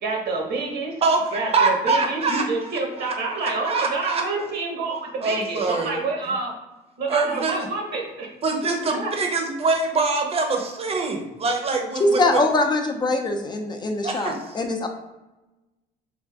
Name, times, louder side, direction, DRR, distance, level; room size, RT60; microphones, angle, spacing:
voice 1, 0.0-1.0 1.3-6.5 7.0-8.3 8.9-9.1, right 3 dB, 75° right, 0 dB, 1.2 m, -28 dB
voice 2, 1.0-2.7 3.0-3.1 3.4-4.2 5.2-6.0 7.1-7.6 8.4-12.4 14.0-14.3, right 3 dB, 35° right, 3 dB, 0.8 m, -24 dB
voice 3, 12.0-14.9, left 2 dB, 25° left, 4 dB, 0.5 m, -22 dB
3.3 x 2.5 x 3.5 m, 1.0 s
cardioid pair, 110°, 17 cm